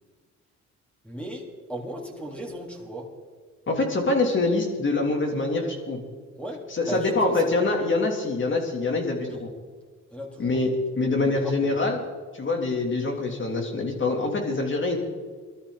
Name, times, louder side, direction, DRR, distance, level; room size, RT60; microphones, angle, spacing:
voice 1, 1.0-3.1 6.4-7.5 9.3-9.5 10.1-10.6 11.2-12.0, equal, 5° left, -1 dB, 3.5 m, -37 dB
voice 2, 3.7-6.0 6.8-9.5 10.4-12.0 12.3-15.0, left 3 dB, 40° left, 2 dB, 3.4 m, -25 dB
20.5 x 13.0 x 4.2 m, 1.5 s
cardioid pair, 90°, 30 cm